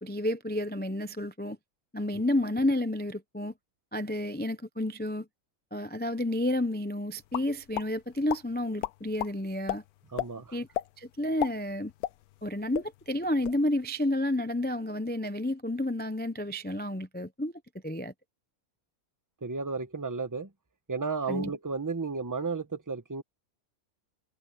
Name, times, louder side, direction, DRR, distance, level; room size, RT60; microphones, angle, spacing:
voice 1, 0.0-1.6 1.9-3.5 3.9-5.3 5.7-9.8 10.5-10.7 11.0-11.9 12.4-17.5 17.8-18.1 21.3-21.5, left 1 dB, 10° left, 0.4 m, -30 dB
Pop or bloop, 7.3-7.9 8.3-8.4 8.8-9.3 9.7-9.8 10.2-10.3 10.7-10.9 11.3-12.5 12.7-12.9 13.3-13.6, left 13 dB, 80° left, 1.1 m, -32 dB
voice 2, 10.1-10.6 19.4-20.5 20.9-23.2, right 4 dB, 15° right, 1.1 m, -33 dB
omnidirectional pair, 1.6 m